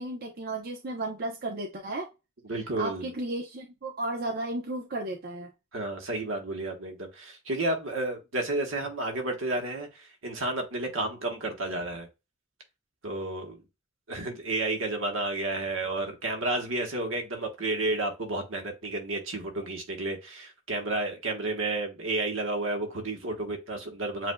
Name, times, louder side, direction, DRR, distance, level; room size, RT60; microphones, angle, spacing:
voice 1, 0.0-2.1 2.8-5.5, right 2 dB, 50° right, 0.7 m, -34 dB
voice 2, 2.4-3.1 5.7-12.1 13.0-13.6 14.1-24.3, right 2 dB, 75° right, 1.3 m, -31 dB
7.8 x 2.6 x 2.2 m
head